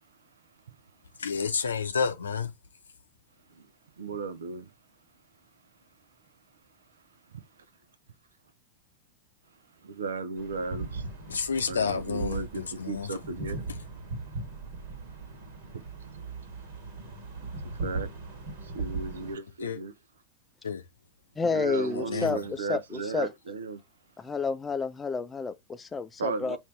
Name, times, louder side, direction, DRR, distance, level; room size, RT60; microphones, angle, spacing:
voice 1, 1.2-2.5 11.3-13.2 19.6-19.8 20.6-20.8 21.9-22.5, left 6 dB, 70° left, 0.7 m, -30 dB
voice 2, 4.0-4.7 9.8-11.1 11.7-13.6 15.7-16.2 17.7-18.1 18.6-19.9 21.5-23.8 26.2-26.6, right 4 dB, 65° right, 0.7 m, -35 dB
sound 1, 10.4-19.4, right 3 dB, 50° right, 1.5 m, -38 dB
voice 3, 21.4-23.3 24.2-26.6, left 4 dB, 15° left, 0.5 m, -30 dB
5.3 x 2.7 x 3.2 m
figure-of-eight pair, 90°, 0 cm